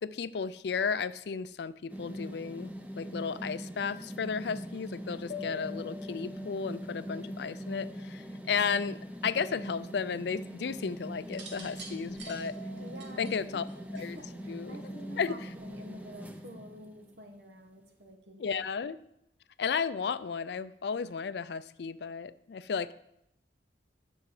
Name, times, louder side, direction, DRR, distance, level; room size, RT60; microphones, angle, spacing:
voice 1, 0.0-12.5 13.2-13.6 13.9-14.2 14.5-14.8 15.2-15.3 18.4-19.0 19.6-22.9, left 6 dB, 65° left, 15 dB, 0.4 m, -34 dB
sound 1, 1.9-17.3, equal, 10° right, 0.7 m, -42 dB
sound 2, 5.3-8.8 12.3-15.3, left 5 dB, 45° left, 1.0 m, -49 dB
sound 3, 11.3-14.4 15.5-15.9, right 3 dB, 80° right, 2.0 m, -48 dB
voice 2, 12.8-13.3 13.9-18.6, equal, 65° right, 3 dB, 1.6 m, -49 dB
10.5 x 6.3 x 4.8 m, 0.79 s
head